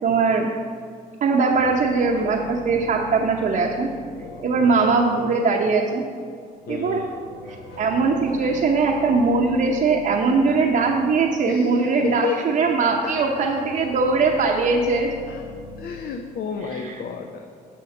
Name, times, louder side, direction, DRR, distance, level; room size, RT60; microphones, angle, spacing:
voice 1, 0.0-0.5 1.2-3.9 4.4-6.0 6.7-7.0 7.8-15.1 16.6-17.0, right 4 dB, 55° right, -1 dB, 0.8 m, -20 dB
sound 1, 1.5-5.6 6.5-12.2 12.6-16.0, left 2 dB, 85° left, 1.3 m, -42 dB
voice 2, 4.2-4.7 6.7-7.1 11.5-12.4 13.0-13.7 14.5-14.8 15.3-15.5 15.8-17.5, left 7 dB, 65° left, 4 dB, 0.7 m, -32 dB
7.2 x 6.3 x 5.9 m, 2.1 s
cardioid pair, 95°, 17 cm